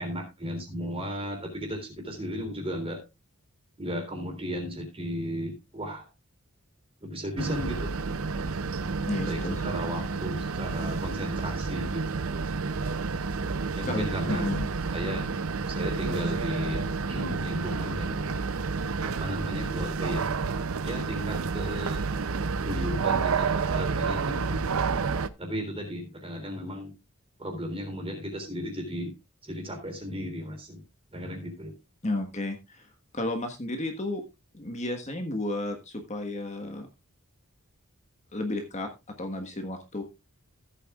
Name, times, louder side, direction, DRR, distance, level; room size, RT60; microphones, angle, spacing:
voice 1, 0.0-3.0 3.8-6.1 7.0-7.9 9.2-12.0 13.7-14.5 14.9-15.3 15.7-16.8 17.1-18.2 19.0-20.3 20.8-22.0 22.6-24.7 25.4-26.9 27.4-29.1 29.4-30.8 31.1-31.7, equal, 25° right, 2 dB, 3.6 m, -35 dB
sound 1, 7.4-25.3, right 4 dB, 65° right, 0.6 m, -30 dB
voice 2, 9.0-9.7 13.9-14.7 32.0-32.9 33.1-34.2 34.5-36.9 38.3-38.9 39.2-40.0, left 2 dB, 30° left, 4 dB, 1.4 m, -32 dB
15.5 x 8.3 x 2.4 m, 0.25 s
head